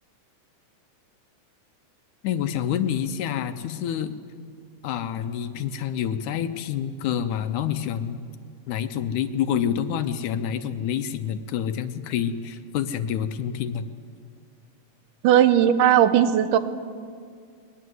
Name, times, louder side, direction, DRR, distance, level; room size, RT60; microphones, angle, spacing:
voice 1, 2.2-4.1 4.8-8.2 8.7-13.9, left 9 dB, 75° left, 10 dB, 2.2 m, -27 dB
voice 2, 15.2-16.6, right 10 dB, 85° right, 11 dB, 2.4 m, -17 dB
21.0 x 19.0 x 7.9 m, 2.1 s
omnidirectional pair, 3.7 m